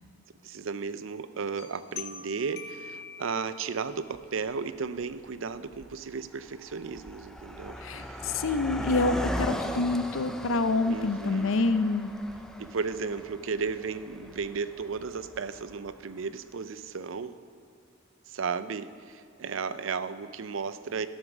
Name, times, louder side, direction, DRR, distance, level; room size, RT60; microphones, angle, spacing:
voice 1, 0.4-7.8 8.0-8.2 10.9-11.5 12.6-17.4 18.3-21.1, right 5 dB, 80° right, 13 dB, 0.5 m, -34 dB
sound 1, 1.6-4.0, left 6 dB, 50° left, 0.9 m, -44 dB
Car passing by, 4.1-4.2 5.0-5.3 5.5-16.0, equal, 5° left, 0.4 m, -38 dB
voice 2, 7.8-12.1, left 3 dB, 85° left, 11 dB, 0.6 m, -27 dB
13.0 x 7.3 x 6.1 m, 2.3 s
head